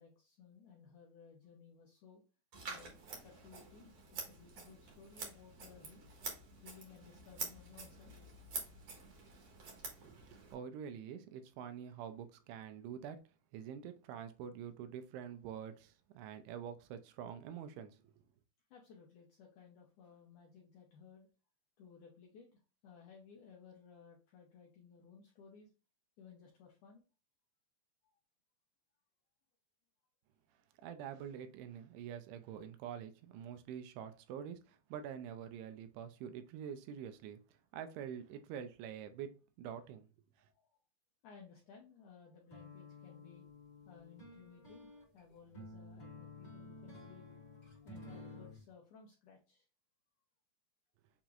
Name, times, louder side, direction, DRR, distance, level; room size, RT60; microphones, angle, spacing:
voice 1, 0.0-2.2 2.7-2.9 3.2-6.1 6.6-8.5 18.7-21.3 21.8-25.7 26.2-27.0 40.4-40.7 41.2-43.5 43.9-47.3 47.8-49.7, left 6 dB, 80° left, 1.8 m, -59 dB
Scissors, 2.5-10.5, right 3 dB, 60° right, 1.7 m, -48 dB
voice 2, 10.0-13.2 13.5-18.1 30.8-37.4 37.7-40.1 40.4-40.5, right 8 dB, 85° right, 2.6 m, -46 dB
sound 1, 42.5-48.6, left 2 dB, 50° left, 0.5 m, -53 dB
7.1 x 2.9 x 2.4 m
omnidirectional pair, 4.7 m